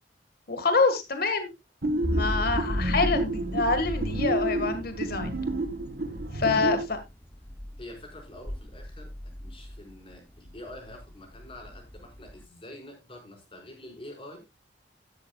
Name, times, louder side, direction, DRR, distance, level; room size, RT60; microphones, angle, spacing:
voice 1, 0.5-1.5 2.1-5.3 6.3-7.0, left 3 dB, 60° left, 8 dB, 1.8 m, -26 dB
sound 1, 1.8-6.9, right 2 dB, 60° right, 1.5 m, -30 dB
sound 2, 2.0-12.4, left 1 dB, 10° left, 0.8 m, -36 dB
voice 2, 6.4-6.9 7.8-9.1 9.4-14.4, left 1 dB, 30° left, 2 dB, 5.0 m, -46 dB
12.5 x 11.5 x 2.4 m, 0.23 s
head